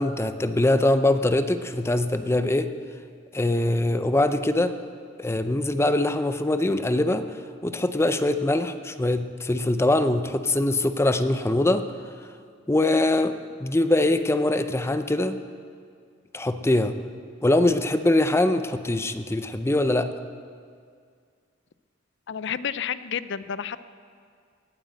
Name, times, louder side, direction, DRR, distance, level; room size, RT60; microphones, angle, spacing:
voice 1, 0.0-2.7 3.3-4.7 5.2-7.3 7.6-11.8 12.7-13.3 13.6-15.4 16.3-16.9 17.4-20.1, left 1 dB, 15° left, 10 dB, 0.6 m, -23 dB
voice 2, 22.3-23.8, left 8 dB, 65° left, 14 dB, 0.5 m, -30 dB
18.0 x 9.2 x 7.8 m, 2.2 s
head